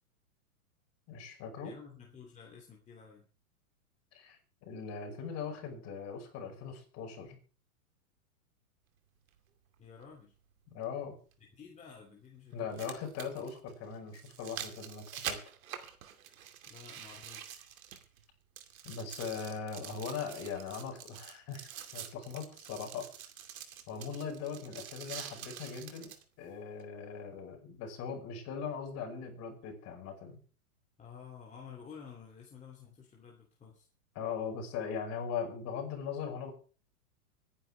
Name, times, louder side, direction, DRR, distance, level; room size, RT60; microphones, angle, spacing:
voice 1, 1.1-1.7 4.1-7.4 10.7-11.2 12.5-15.4 18.8-23.1 23.9-30.4 34.1-36.5, left 6 dB, 35° left, 3 dB, 5.7 m, -40 dB
voice 2, 1.6-3.3 9.8-10.3 11.6-12.9 16.7-17.6 31.0-33.9, left 6 dB, 15° left, -1 dB, 2.8 m, -52 dB
sound 1, 9.3-9.4 11.3-11.4 12.5-18.3 18.6-26.2 26.8-26.9, right 9 dB, 70° right, 2.6 m, -46 dB
25.0 x 10.0 x 3.4 m, 0.38 s
hypercardioid pair, 125°, 43 cm